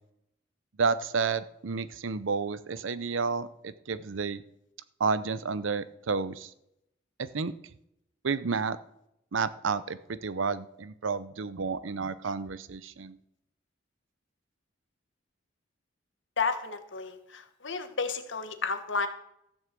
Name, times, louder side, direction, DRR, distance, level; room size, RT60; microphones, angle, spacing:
voice 1, 0.8-4.4 5.0-6.5 7.2-7.5 8.2-8.8 9.3-13.2, right 5 dB, 85° right, 15 dB, 0.7 m, -31 dB
voice 2, 16.4-19.1, left 4 dB, 70° left, 9 dB, 1.4 m, -32 dB
14.0 x 6.4 x 7.5 m, 0.80 s
head